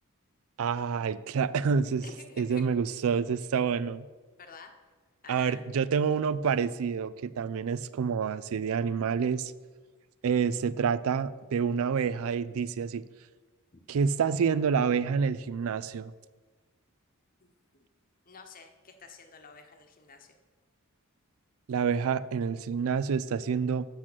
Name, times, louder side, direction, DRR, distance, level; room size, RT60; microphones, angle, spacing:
voice 1, 0.6-2.0 2.4-4.0 5.3-9.5 10.2-13.0 13.9-16.1 21.7-23.9, right 6 dB, 65° right, 17 dB, 0.4 m, -28 dB
voice 2, 2.0-2.6 4.4-4.7 5.2-5.6 13.7-13.8 17.4-17.9 18.3-20.3, left 4 dB, 40° left, 6 dB, 1.0 m, -50 dB
8.5 x 6.1 x 6.1 m, 1.4 s
head